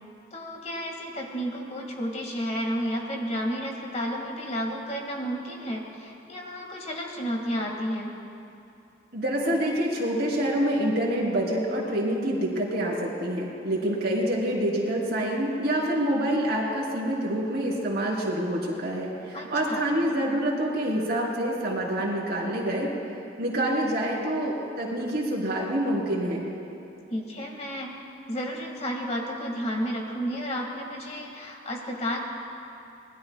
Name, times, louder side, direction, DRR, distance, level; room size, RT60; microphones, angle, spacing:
voice 1, 0.3-8.1 19.3-19.8 27.1-27.9 28.3-32.2, equal, 40° left, 0 dB, 2.1 m, -32 dB
voice 2, 9.1-22.9 23.4-26.5, right 1 dB, 60° right, -3 dB, 3.7 m, -27 dB
26.0 x 20.5 x 2.4 m, 2.6 s
head